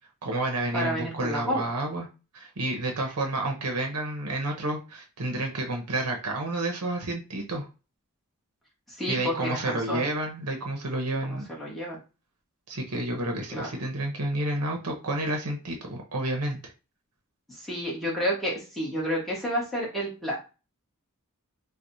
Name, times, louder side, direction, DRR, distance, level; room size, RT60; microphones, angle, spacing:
voice 1, 0.2-2.1 2.3-7.7 9.1-11.5 12.7-16.6, right 2 dB, 85° right, 2 dB, 0.8 m, -30 dB
voice 2, 0.7-1.6 9.0-10.0 11.3-12.0 13.5-13.7 17.6-20.4, equal, ahead, -6 dB, 1.3 m, -30 dB
4.6 x 2.3 x 2.7 m, 0.31 s
head